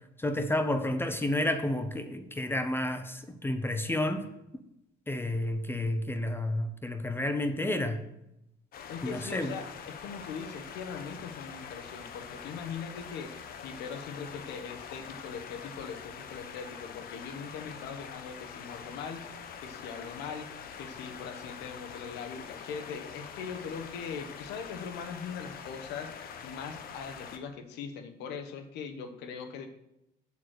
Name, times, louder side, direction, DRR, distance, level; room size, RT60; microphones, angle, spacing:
voice 1, 0.2-4.3 5.1-8.0 9.0-9.5, left 1 dB, 15° left, 8 dB, 0.7 m, -30 dB
sound 1, 8.7-27.4, left 7 dB, 60° left, 1.0 m, -45 dB
voice 2, 8.9-20.5 20.8-29.7, left 6 dB, 85° left, 6 dB, 1.2 m, -41 dB
7.2 x 6.1 x 6.6 m, 0.86 s
cardioid pair, 110°, 17 cm